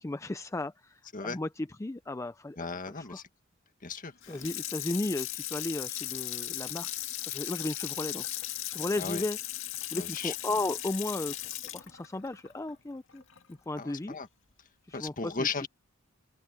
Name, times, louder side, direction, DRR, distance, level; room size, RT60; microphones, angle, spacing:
voice 1, 0.0-2.6 3.1-3.2 4.3-6.9 7.3-8.2 8.7-9.4 9.9-11.3 11.7-13.2 13.5-14.1 14.9-15.1 15.4-15.5, left 2 dB, 15° left, 0.4 m, -34 dB
voice 2, 2.6-3.3 3.8-4.4 9.0-9.2 10.0-10.3 13.7-14.3 14.9-15.7, left 4 dB, 40° left, 1.8 m, -36 dB
Water tap faucet / Sink (filling or washing), 4.2-13.4 13.8-13.9, left 13 dB, 65° left, 2.1 m, -37 dB
open air
head